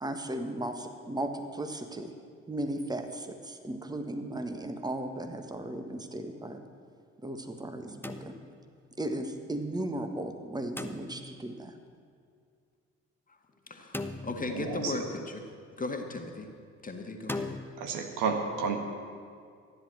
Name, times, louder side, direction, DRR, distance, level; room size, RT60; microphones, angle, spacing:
voice 1, 0.0-2.1 2.5-6.6 7.2-8.4 9.0-11.7, right 1 dB, 10° right, 6 dB, 1.5 m, -36 dB
sound 1, 8.0-8.8 10.8-11.5 13.9-14.8 17.3-17.6, left 2 dB, 5° left, 1.0 m, -38 dB
voice 2, 13.7-15.4 15.8-16.5 16.8-17.6, left 3 dB, 25° left, 4 dB, 1.8 m, -36 dB
voice 3, 14.5-14.9 17.8-18.8, right 5 dB, 60° right, 4 dB, 1.7 m, -31 dB
14.0 x 10.5 x 7.8 m, 2.3 s
figure-of-eight pair, 50°, 35 cm